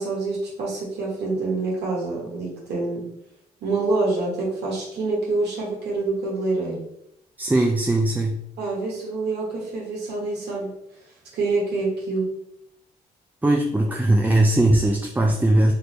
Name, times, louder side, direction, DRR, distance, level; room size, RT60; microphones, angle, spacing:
voice 1, 0.0-3.1 3.6-6.8 8.6-10.7 11.3-12.3, right 3 dB, 70° right, -4 dB, 1.1 m, -26 dB
voice 2, 7.4-8.4 13.4-15.7, right 1 dB, 10° right, 1 dB, 0.4 m, -19 dB
3.3 x 2.6 x 2.9 m, 0.78 s
supercardioid pair, 55°, 18 cm